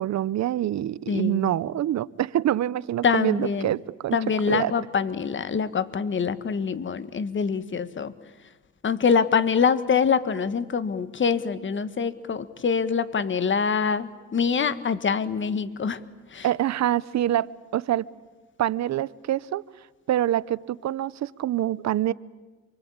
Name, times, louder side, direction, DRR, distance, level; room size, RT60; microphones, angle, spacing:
voice 1, 0.0-4.2 4.5-4.7 16.4-18.1 18.6-19.6 20.1-22.1, right 12 dB, 65° right, 19 dB, 0.8 m, -25 dB
voice 2, 1.1-1.5 3.0-3.7 4.1-8.1 8.8-16.0 16.3-16.5, left 6 dB, 40° left, 14 dB, 1.5 m, -25 dB
27.5 x 24.0 x 8.8 m, 1.2 s
cardioid pair, 90°, 30 cm